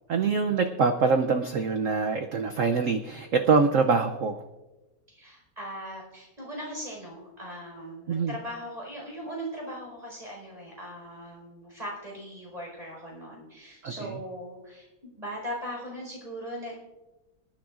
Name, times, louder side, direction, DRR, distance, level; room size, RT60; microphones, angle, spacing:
voice 1, 0.1-4.4 8.1-8.3 13.8-14.1, right 4 dB, 85° right, 5 dB, 0.7 m, -24 dB
voice 2, 5.1-16.8, equal, 20° right, -3 dB, 4.8 m, -39 dB
26.5 x 10.0 x 2.5 m, 1.1 s
omnidirectional pair, 2.2 m